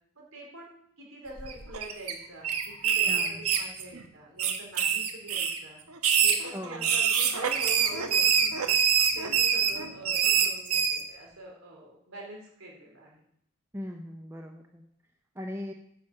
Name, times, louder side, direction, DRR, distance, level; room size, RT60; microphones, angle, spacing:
voice 1, 0.2-0.7 1.0-5.8 6.2-8.8 9.1-13.2, right 1 dB, 65° right, -1 dB, 3.9 m, -45 dB
sound 1, 1.4-2.1 2.4-4.0 4.4-5.6 6.0-11.0, right 7 dB, 80° right, 1.2 m, -25 dB
voice 2, 3.1-3.4 6.5-7.0 13.7-14.9 15.3-15.7, left 1 dB, 10° right, 2 dB, 0.7 m, -39 dB
10.5 x 5.9 x 6.5 m, 0.69 s
head